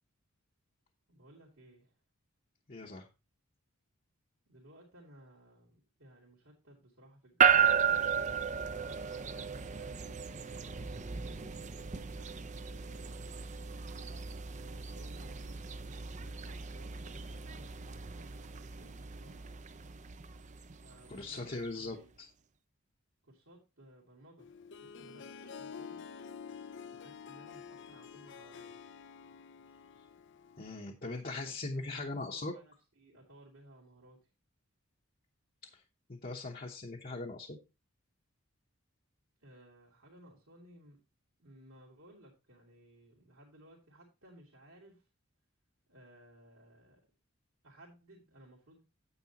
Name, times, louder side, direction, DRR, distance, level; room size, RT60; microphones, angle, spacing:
voice 1, 1.1-1.9 4.5-7.8 8.6-11.1 12.1-13.6 14.5-19.4 20.8-22.2 23.2-24.5 24.8-26.2 26.9-28.8 31.7-34.2 39.4-41.0 41.4-45.0 45.9-47.0 47.6-48.9, right 1 dB, 75° right, -5 dB, 3.0 m, -59 dB
voice 2, 2.7-3.1 21.1-22.3 30.6-32.5 35.7-35.8 36.1-37.6, left 2 dB, 35° left, 0 dB, 0.9 m, -40 dB
sound 1, 7.4-21.7, right 7 dB, 35° right, 0.5 m, -34 dB
Harp, 24.4-30.9, left 6 dB, 50° left, 0.5 m, -49 dB
9.6 x 8.2 x 2.9 m, 0.28 s
head